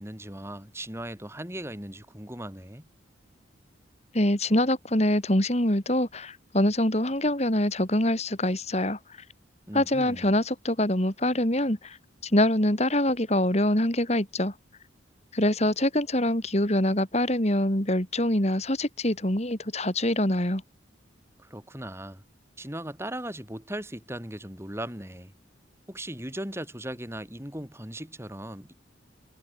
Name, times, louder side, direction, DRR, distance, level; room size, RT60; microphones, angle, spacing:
voice 1, 0.0-2.9 9.7-10.3 21.4-22.2 22.6-25.3 25.9-28.7, right 1 dB, 15° right, 6.7 m, -38 dB
voice 2, 4.1-9.0 9.7-12.0 12.2-14.5 15.3-20.6, left 1 dB, 35° left, 3.5 m, -24 dB
head